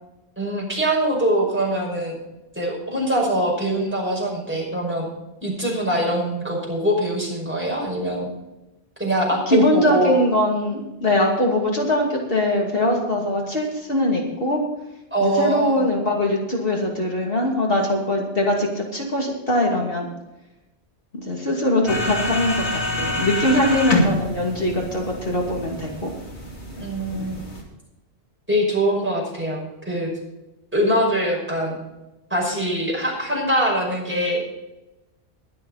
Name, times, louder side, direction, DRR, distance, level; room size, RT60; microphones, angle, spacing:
voice 1, 0.4-2.2 2.6-5.1 5.4-8.3 9.0-10.2 15.1-15.9 22.0-22.2 26.8-27.4 28.5-29.6 29.9-30.1 30.7-31.8 32.3-34.4, right 1 dB, 10° right, -3 dB, 5.6 m, -23 dB
voice 2, 9.5-14.6 15.2-20.1 21.1-26.1 27.1-27.3, left 1 dB, 55° left, -1 dB, 2.8 m, -22 dB
sound 1, 21.9-27.6, left 1 dB, 85° left, 3.1 m, -27 dB
22.5 x 7.7 x 4.1 m, 0.98 s
omnidirectional pair, 1.1 m